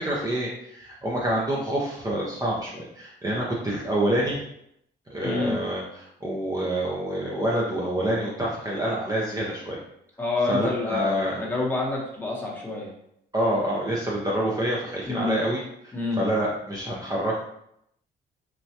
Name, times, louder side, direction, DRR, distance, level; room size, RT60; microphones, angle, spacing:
voice 1, 0.0-4.4 5.1-9.8 10.5-11.5 13.3-17.4, right 1 dB, 20° right, -5 dB, 0.5 m, -27 dB
voice 2, 5.2-5.6 10.2-12.9 15.1-15.4 15.9-16.2, left 3 dB, 10° left, -3 dB, 0.9 m, -28 dB
3.2 x 2.2 x 2.7 m, 0.76 s
cardioid pair, 90°, 20 cm